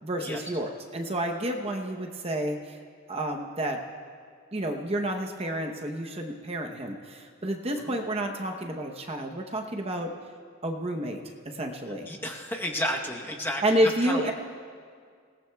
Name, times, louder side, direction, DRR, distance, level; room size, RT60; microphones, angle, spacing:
voice 1, 0.0-2.8 3.1-3.8 4.5-10.1 10.6-12.1 13.6-14.3, right 1 dB, 30° right, 2 dB, 0.9 m, -30 dB
voice 2, 12.1-14.3, equal, 10° left, 0 dB, 1.0 m, -32 dB
27.0 x 18.0 x 2.3 m, 2.1 s
head